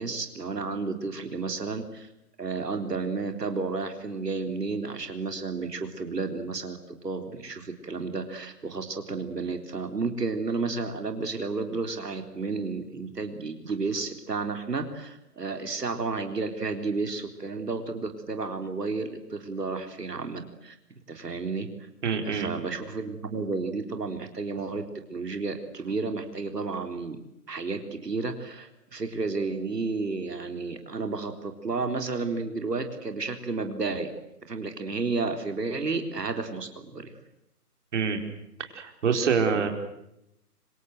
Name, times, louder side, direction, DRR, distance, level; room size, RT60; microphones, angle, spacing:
voice 1, 0.0-2.1 2.4-20.8 21.1-21.7 22.2-27.2 27.5-34.1 34.5-37.1 39.5-39.7, right 4 dB, 85° right, 6 dB, 3.9 m, -32 dB
voice 2, 22.0-22.5 37.9-38.2 38.6-39.7, right 6 dB, 45° right, 5 dB, 4.6 m, -26 dB
28.0 x 26.0 x 7.8 m, 0.84 s
hypercardioid pair, 155°, 47 cm